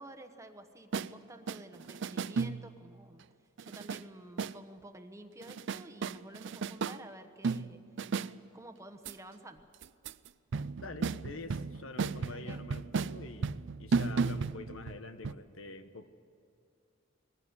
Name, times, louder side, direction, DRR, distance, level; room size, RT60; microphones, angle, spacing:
voice 1, 0.0-3.2 3.6-7.8 8.5-9.7 12.2-12.6, right 1 dB, 15° right, 7 dB, 1.1 m, -51 dB
sound 1, 0.9-1.1 1.5-2.8 3.6-4.0 4.4-4.6 5.4-7.0 7.4-8.3 9.1-9.2 9.8-10.3 10.5-15.0 15.2-15.3, right 4 dB, 65° right, 0.5 m, -34 dB
voice 2, 10.8-16.1, left 3 dB, 85° left, 10 dB, 1.2 m, -46 dB
21.0 x 15.5 x 9.6 m, 2.6 s
head